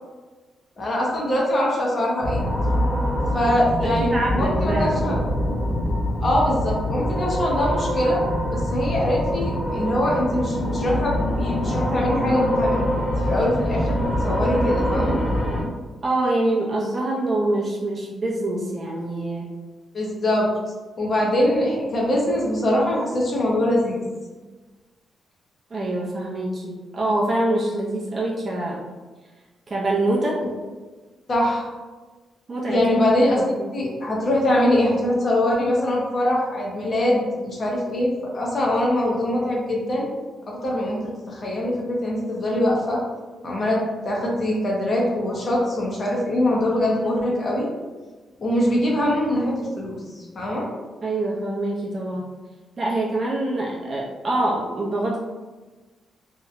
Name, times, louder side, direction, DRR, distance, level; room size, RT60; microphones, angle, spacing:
voice 1, 0.8-2.4 3.3-5.2 6.2-8.3 8.5-12.9 13.3-15.2 19.9-20.5 21.0-24.0 30.4-30.5 31.3-31.7 32.7-40.1 40.5-43.0 43.4-47.7 48.4-50.7, left 1 dB, 40° left, -3 dB, 0.5 m, -23 dB
sound 1, 2.2-15.6, equal, 20° left, 0.9 m, -24 dB
voice 2, 4.0-5.0 16.0-19.5 25.7-28.8 29.7-30.4 32.5-32.8 33.4-33.7 51.0-52.3 52.8-55.2, right 1 dB, 35° right, -4 dB, 0.4 m, -25 dB
2.7 x 2.1 x 2.4 m, 1.3 s
cardioid pair, 130°, 0 cm